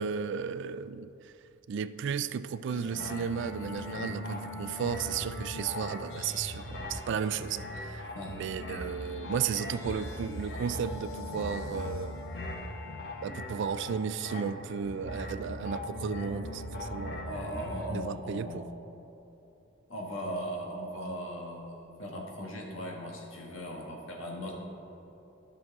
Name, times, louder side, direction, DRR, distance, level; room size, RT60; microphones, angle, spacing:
voice 1, 0.0-1.3 1.7-12.2 13.2-17.3 17.9-18.6, right 7 dB, 60° right, 14 dB, 0.3 m, -34 dB
sound 1, 2.7-17.9, left 1 dB, 55° left, 1.0 m, -39 dB
voice 2, 17.3-18.6 19.9-24.6, equal, 75° left, -1 dB, 1.7 m, -38 dB
13.5 x 6.1 x 3.6 m, 3.0 s
head